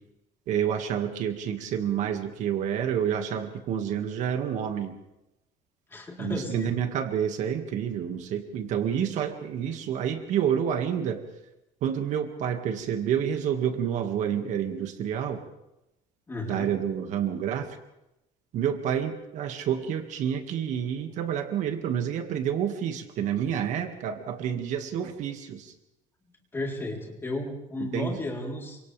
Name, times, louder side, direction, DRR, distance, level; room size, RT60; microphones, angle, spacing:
voice 1, 0.5-4.9 6.2-11.2 11.8-15.4 16.5-17.8 18.5-25.7 27.8-28.2, right 9 dB, 55° right, 6 dB, 2.1 m, -29 dB
voice 2, 5.9-6.7 16.3-16.7 26.5-28.8, left 2 dB, 15° left, 0 dB, 4.0 m, -33 dB
29.5 x 25.5 x 3.5 m, 0.88 s
cardioid pair, 165°, 15 cm